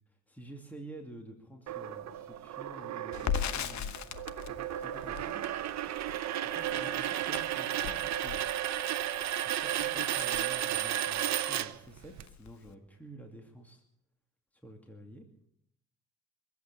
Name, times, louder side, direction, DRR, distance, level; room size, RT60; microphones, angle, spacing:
voice 1, 0.1-3.9 4.4-5.5 6.4-8.6 9.3-13.8 14.6-15.3, right 1 dB, 5° left, 2 dB, 2.6 m, -50 dB
sound 1, 1.7-12.2, right 11 dB, 65° right, 0.9 m, -34 dB
Crackle, 3.1-11.2 11.5-11.7 12.0-12.7, left 9 dB, 65° left, 1.1 m, -39 dB
24.0 x 8.5 x 7.0 m, 0.73 s
cardioid pair, 90°, 30 cm